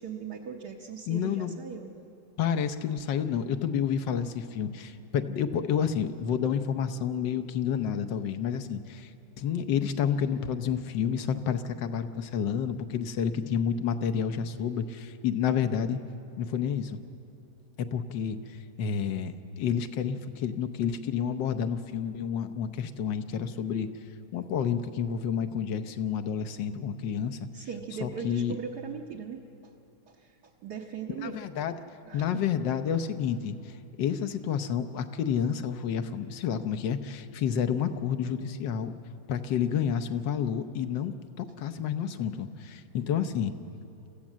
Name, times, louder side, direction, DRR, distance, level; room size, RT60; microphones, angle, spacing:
voice 1, 0.0-1.9 27.5-29.7 30.1-31.4 32.1-32.3, right 6 dB, 65° right, -1 dB, 1.5 m, -39 dB
voice 2, 1.1-1.5 2.4-9.1 9.4-16.0 16.4-17.0 17.8-23.9 24.3-27.4 28.0-28.5 31.2-31.7 32.1-38.9 39.3-43.5, left 8 dB, 75° left, 9 dB, 1.5 m, -30 dB
26.0 x 15.0 x 7.4 m, 2.9 s
omnidirectional pair, 2.0 m